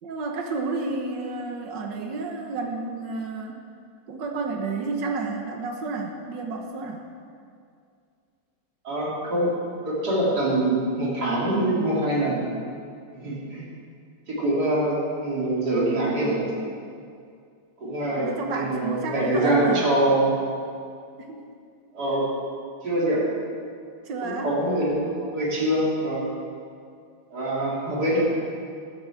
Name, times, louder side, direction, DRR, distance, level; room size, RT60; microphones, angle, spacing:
voice 1, 0.0-3.6 4.1-7.0 18.2-19.9 21.2-21.5 24.0-24.6, right 3 dB, 80° right, 2 dB, 1.9 m, -31 dB
voice 2, 8.8-9.5 9.8-12.5 13.1-13.6 14.3-16.5 17.8-20.3 21.9-22.3 22.8-23.2 24.2-26.3 27.3-28.2, right 1 dB, 60° right, -6 dB, 3.8 m, -24 dB
13.5 x 7.8 x 7.4 m, 2.3 s
omnidirectional pair, 1.9 m